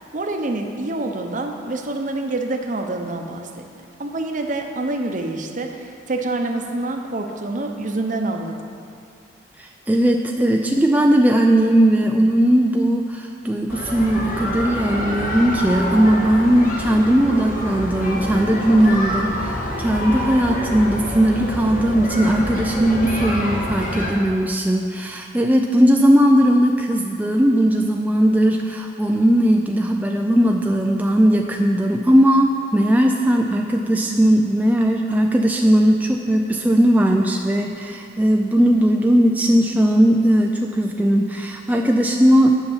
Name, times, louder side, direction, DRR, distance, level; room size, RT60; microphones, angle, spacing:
voice 1, 0.1-3.6 4.0-8.6, right 2 dB, 45° right, 4 dB, 0.8 m, -26 dB
voice 2, 9.6-42.6, equal, 10° right, 1 dB, 0.4 m, -18 dB
sound 1, 13.7-24.1, equal, 45° left, 1.5 m, -27 dB
9.6 x 5.7 x 7.3 m, 2.3 s
head